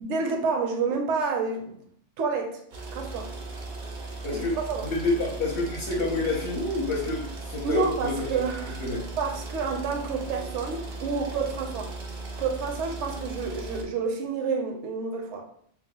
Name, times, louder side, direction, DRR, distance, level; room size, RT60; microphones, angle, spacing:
voice 1, 0.0-1.8 2.2-2.6 2.9-3.3 4.3-4.9 7.6-8.8 9.2-11.9 12.4-15.5, right 5 dB, 75° right, 3 dB, 0.9 m, -29 dB
sound 1, 2.7-13.8, right 3 dB, 55° right, 0.6 m, -37 dB
voice 2, 4.2-8.4 8.8-9.1, left 3 dB, 60° left, -2 dB, 0.8 m, -28 dB
3.0 x 2.0 x 3.7 m, 0.63 s
omnidirectional pair, 1.2 m